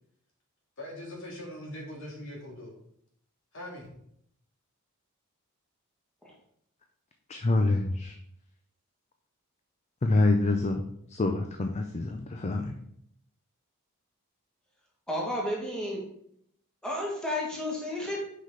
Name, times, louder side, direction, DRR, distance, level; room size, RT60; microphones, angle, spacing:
voice 1, 0.8-2.7 3.5-3.9, left 1 dB, 60° left, -2 dB, 2.2 m, -41 dB
voice 2, 7.3-8.1 10.0-10.8 11.1-12.7, left 2 dB, 30° left, 5 dB, 0.5 m, -26 dB
voice 3, 15.1-16.0 16.8-18.2, left 1 dB, 5° left, -4 dB, 1.9 m, -32 dB
6.2 x 5.8 x 3.8 m, 0.70 s
head